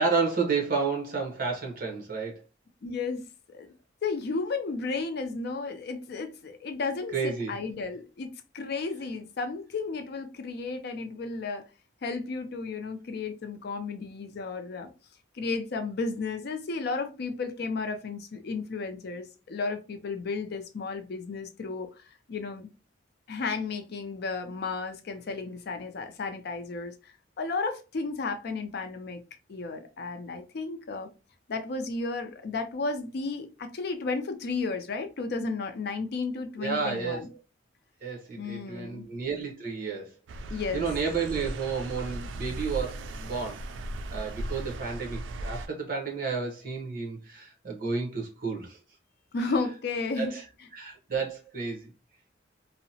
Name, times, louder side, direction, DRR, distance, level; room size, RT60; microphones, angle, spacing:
voice 1, 0.0-2.4 7.1-7.5 36.6-37.3 38.0-40.1 40.7-43.6 44.1-48.8 49.4-49.5 50.2-50.4 50.7-51.9, right 5 dB, 50° right, 0.8 m, -31 dB
voice 2, 2.8-3.7 4.0-11.6 12.0-14.9 15.3-21.9 22.3-22.7 23.3-29.2 29.5-31.1 31.5-37.3 38.4-39.1 40.5-40.9 49.3-50.3, left 4 dB, 55° left, 0.4 m, -33 dB
sound 1, 40.3-45.7, right 1 dB, 75° right, 0.3 m, -37 dB
2.7 x 2.0 x 2.7 m
head